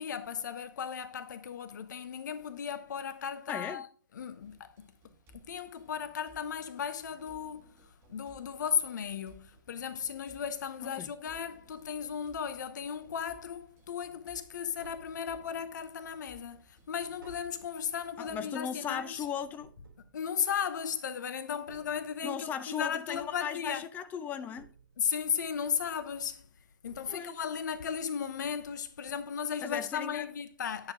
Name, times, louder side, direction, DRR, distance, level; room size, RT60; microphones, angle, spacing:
voice 1, 0.0-3.9 4.1-19.3 20.1-23.8 25.0-26.5 26.8-30.9, left 7 dB, 60° left, 0.7 m, -36 dB
voice 2, 3.5-3.8 10.8-11.1 18.2-19.7 22.2-24.7 27.1-27.4 29.6-30.2, left 8 dB, 15° left, 0.6 m, -37 dB
sound 1, 4.4-18.3, right 4 dB, 20° right, 1.2 m, -62 dB
Tap, 14.6-15.7 16.2-20.9 21.5-22.6 23.1-24.1 24.6-25.4 26.4-26.5 26.9-27.7 28.0-28.1, right 5 dB, 75° right, 2.1 m, -59 dB
9.5 x 6.2 x 3.8 m
figure-of-eight pair, 130°, 11 cm